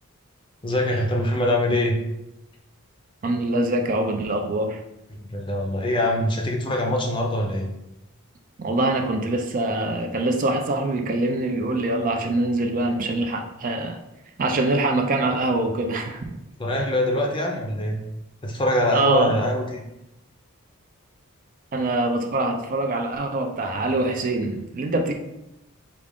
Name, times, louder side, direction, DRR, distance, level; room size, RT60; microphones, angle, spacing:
voice 1, 0.6-2.0 5.3-7.7 16.6-18.0 18.4-19.8, left 1 dB, 20° left, 1 dB, 0.5 m, -23 dB
voice 2, 3.2-4.8 8.6-14.0 14.4-16.3 16.8-16.9 18.9-19.4 21.7-25.1, right 2 dB, 40° right, 4 dB, 0.4 m, -24 dB
4.7 x 2.4 x 3.5 m, 0.90 s
head